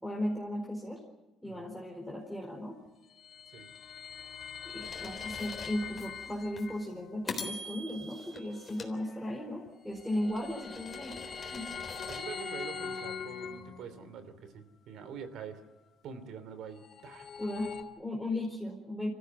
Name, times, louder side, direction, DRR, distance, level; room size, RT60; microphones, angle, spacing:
voice 1, 0.0-1.0 1.4-2.8 4.6-11.2 11.5-11.7 17.4-19.1, left 1 dB, ahead, -1 dB, 4.5 m, -36 dB
voice 2, 1.4-1.8 3.5-3.7 12.1-15.6 16.0-17.3, right 6 dB, 70° right, 12 dB, 3.0 m, -45 dB
sound 1, 2.9-6.8 9.7-14.1 16.6-17.8, left 6 dB, 55° left, 2.7 m, -42 dB
sound 2, 4.8-6.1 6.6-6.7 7.3-9.6 10.1-12.3, left 3 dB, 30° left, 3.7 m, -44 dB
26.5 x 15.0 x 9.6 m, 1.1 s
cardioid pair, 105°, 0 cm